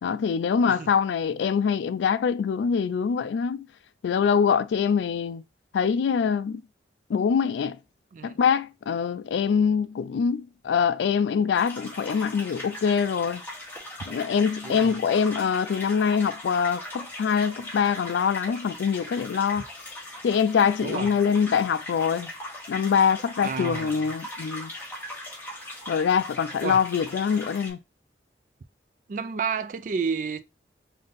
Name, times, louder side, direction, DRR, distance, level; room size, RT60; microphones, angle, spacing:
voice 1, 0.0-3.7 4.0-5.4 5.7-6.6 7.1-7.8 8.2-13.4 14.1-19.6 20.2-22.3 22.7-24.7 25.9-27.8, left 6 dB, 85° left, 0.3 m, -24 dB
voice 2, 8.1-8.4 14.6-15.0 20.8-21.1 23.4-24.0 26.6-26.8 29.1-30.4, right 5 dB, 45° right, 0.3 m, -31 dB
sound 1, 11.5-27.7, left 1 dB, 10° left, 1.3 m, -39 dB
3.6 x 2.7 x 3.9 m
head